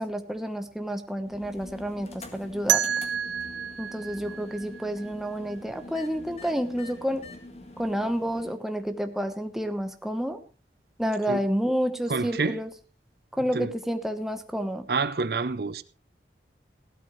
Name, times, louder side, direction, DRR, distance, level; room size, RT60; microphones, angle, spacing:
voice 1, 0.0-2.9 3.8-7.2 7.8-10.4 11.0-12.7 13.3-14.9, equal, ahead, 1.0 m, -30 dB
sound 1, 1.2-8.5, left 2 dB, 35° left, 1.7 m, -45 dB
sound 2, 2.7-5.6, right 10 dB, 85° right, 0.8 m, -29 dB
voice 2, 12.1-12.6 13.5-13.7 14.9-15.8, right 4 dB, 60° right, 0.6 m, -27 dB
16.5 x 12.5 x 3.1 m
head